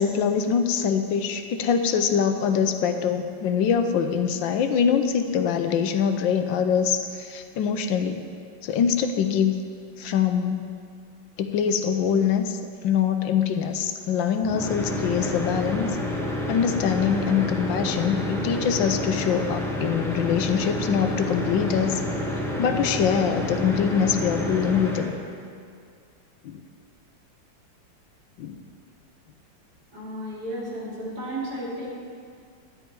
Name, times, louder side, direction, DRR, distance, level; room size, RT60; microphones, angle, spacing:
voice 1, 0.0-8.2 8.6-9.5 10.0-10.7 11.4-15.9 16.5-22.0 22.6-25.1 26.4-26.6 28.4-28.6, left 7 dB, 85° left, 7 dB, 1.4 m, -24 dB
sound 1, 14.4-25.1, left 1 dB, ahead, 0.9 m, -29 dB
voice 2, 29.9-31.9, right 1 dB, 55° right, -8 dB, 3.8 m, -33 dB
12.5 x 10.0 x 4.6 m, 2.2 s
omnidirectional pair, 2.0 m